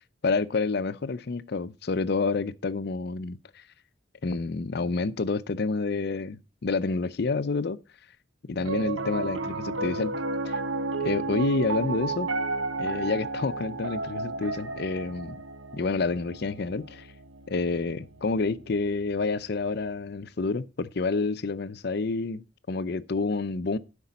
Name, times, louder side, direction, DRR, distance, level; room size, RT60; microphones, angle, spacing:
voice 1, 0.2-3.4 4.2-7.8 8.4-10.1 10.5-10.6 11.0-12.3 12.8-15.4 15.7-17.1 17.5-23.8, left 3 dB, 55° left, 0.5 m, -28 dB
Piano, 8.6-19.0, right 3 dB, 80° right, 0.9 m, -32 dB
12.0 x 5.3 x 4.1 m
head